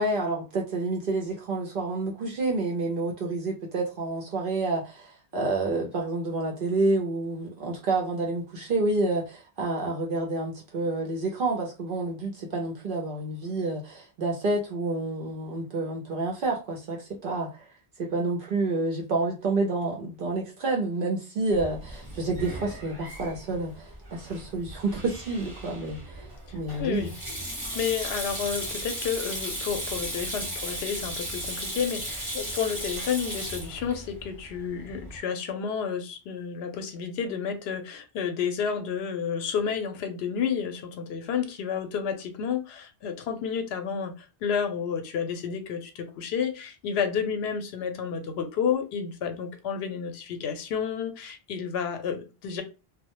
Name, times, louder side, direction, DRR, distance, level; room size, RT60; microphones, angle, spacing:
voice 1, 0.0-17.7 18.0-27.1, right 2 dB, 60° right, 0.7 m, -29 dB
Sink (filling or washing), 21.5-35.2, right 1 dB, 25° right, 0.9 m, -36 dB
voice 2, 26.8-27.1 27.7-52.6, left 7 dB, 75° left, 0.8 m, -31 dB
2.1 x 2.1 x 2.8 m
omnidirectional pair, 1.1 m